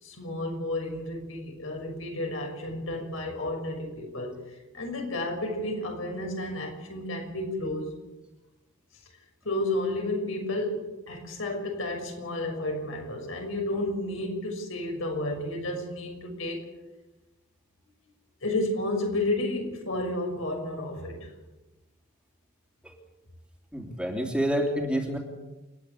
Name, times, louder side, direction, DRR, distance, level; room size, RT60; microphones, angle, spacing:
voice 1, 0.0-4.3 4.7-7.9 9.4-16.6 18.4-21.3, left 1 dB, 75° left, 1 dB, 6.2 m, -31 dB
voice 2, 23.7-25.2, equal, 5° right, 1 dB, 3.0 m, -28 dB
29.5 x 10.5 x 8.3 m, 1.1 s
head